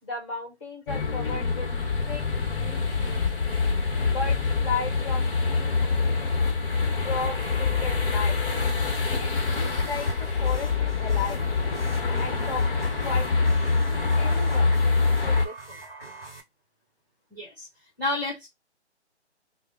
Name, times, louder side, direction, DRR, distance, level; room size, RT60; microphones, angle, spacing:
voice 1, 0.0-1.7 2.1-2.2 2.5-3.2 4.1-6.3 7.0-8.4 9.2-11.5 12.2-13.6 13.9-14.7 15.2-15.8, left 4 dB, 25° left, 1.4 m, -36 dB
sound 1, 0.9-15.5, left 4 dB, 50° left, 1.0 m, -25 dB
sound 2, 9.5-16.4, right 2 dB, 5° left, 0.6 m, -45 dB
voice 2, 17.3-17.7 18.0-18.5, left 2 dB, 15° right, 1.0 m, -30 dB
3.3 x 2.2 x 3.7 m
figure-of-eight pair, 155°, 35 cm